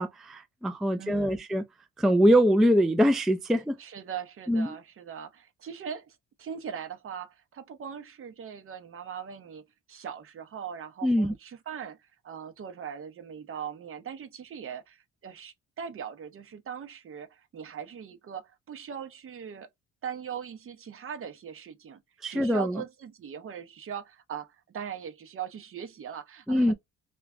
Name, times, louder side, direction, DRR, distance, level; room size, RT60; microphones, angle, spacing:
voice 1, 0.0-1.6 2.0-3.8 4.5-4.8 11.0-11.3 22.2-22.8 26.5-26.7, equal, ahead, 0.3 m, -23 dB
voice 2, 1.0-1.5 3.8-9.6 9.9-19.7 20.0-22.0 22.3-26.7, right 8 dB, 45° right, 0.7 m, -40 dB
3.1 x 2.2 x 2.4 m
cardioid pair, 90°, 30 cm